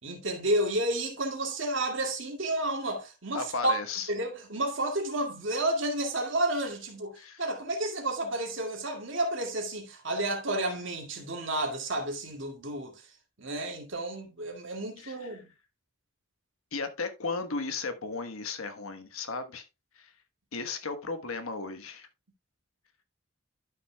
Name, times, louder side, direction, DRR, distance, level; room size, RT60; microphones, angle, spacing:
voice 1, 0.0-3.7 4.1-13.1 13.4-15.5, right 1 dB, 65° right, 2.1 m, -31 dB
voice 2, 3.3-4.1 7.2-7.4 15.0-15.4 16.7-19.6 20.0-20.1 20.5-22.1, left 4 dB, 90° left, 1.3 m, -35 dB
12.0 x 6.0 x 2.3 m
head